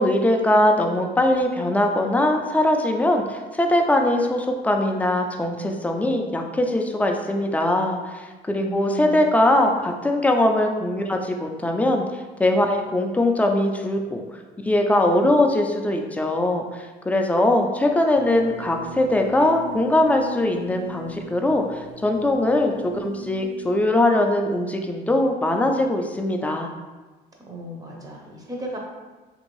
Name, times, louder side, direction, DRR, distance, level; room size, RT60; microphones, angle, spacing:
voice 1, 0.0-12.0 12.4-14.2 14.7-26.7, left 1 dB, 10° left, 3 dB, 0.3 m, -21 dB
voice 2, 8.5-9.3 27.5-28.8, right 2 dB, 20° right, -1 dB, 0.7 m, -35 dB
sound 1, 18.1-23.6, left 1 dB, 55° right, 0.7 m, -39 dB
2.8 x 2.6 x 3.0 m, 1.2 s
cardioid pair, 110°, 17 cm